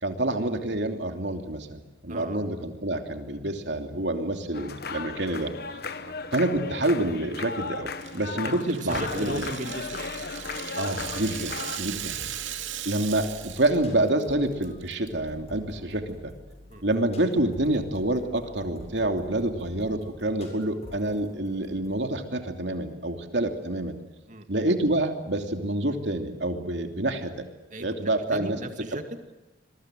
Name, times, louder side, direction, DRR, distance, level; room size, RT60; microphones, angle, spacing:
voice 1, 0.0-5.5 6.3-9.5 10.7-12.2 12.8-16.3 16.8-24.0 24.5-27.5 27.8-28.6, right 1 dB, 65° right, 5 dB, 3.0 m, -27 dB
sound 1, 4.5-11.8, left 4 dB, 55° left, 1.1 m, -36 dB
Rattle (instrument), 8.0-13.8 14.1-14.2 14.6-15.1, right 10 dB, 90° right, 2.3 m, -37 dB
voice 2, 8.4-10.1 16.7-16.8 24.3-24.5 27.7-27.9 28.3-29.0, right 1 dB, 40° right, 7 dB, 2.3 m, -36 dB
sound 2, 8.9-22.0, left 1 dB, 35° left, 7.4 m, -48 dB
26.5 x 22.5 x 7.7 m, 1.1 s
head